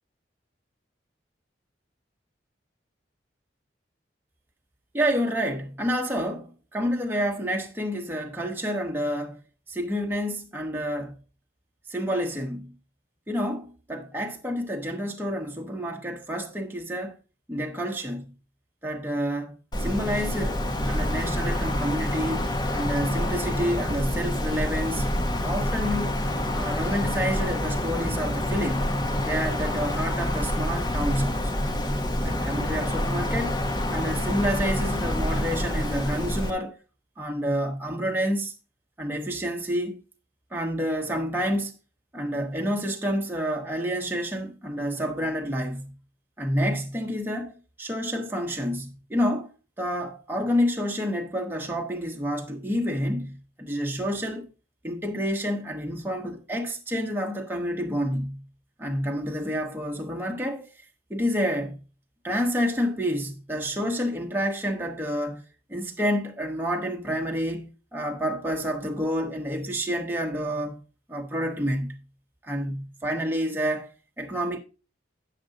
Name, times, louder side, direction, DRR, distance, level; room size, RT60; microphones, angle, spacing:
voice 1, 4.9-9.4 9.7-11.2 11.9-12.7 13.3-17.1 17.5-18.3 18.8-25.1 25.4-26.2 26.5-28.9 29.2-31.5 32.2-33.6 33.9-36.8 37.2-38.5 39.0-40.0 40.5-41.7 42.1-45.9 46.4-49.5 49.8-54.5 54.8-58.4 58.8-60.7 61.1-61.8 62.2-65.4 65.7-70.8 71.1-72.0 72.4-73.9 74.2-74.6, equal, 10° right, 1.0 m, -29 dB
Wind, 19.7-36.5, left 1 dB, 20° left, 0.9 m, -27 dB
9.4 x 6.6 x 3.8 m
head